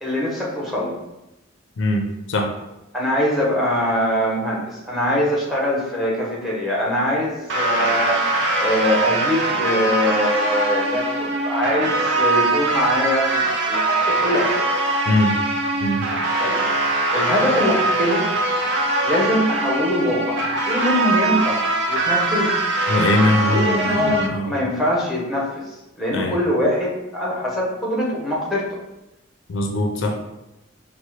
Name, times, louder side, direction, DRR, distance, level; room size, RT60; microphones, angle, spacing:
voice 1, 0.0-1.0 2.9-14.8 16.4-18.3 19.0-22.5 23.5-28.8, equal, ahead, -4 dB, 0.7 m, -23 dB
voice 2, 1.8-2.5 15.1-15.4 15.8-16.1 22.9-24.6 26.1-26.4 29.5-30.2, left 1 dB, 60° left, 3 dB, 0.4 m, -21 dB
sound 1, 7.5-24.3, right 2 dB, 55° right, 0.4 m, -22 dB
4.2 x 2.0 x 3.1 m, 0.94 s
head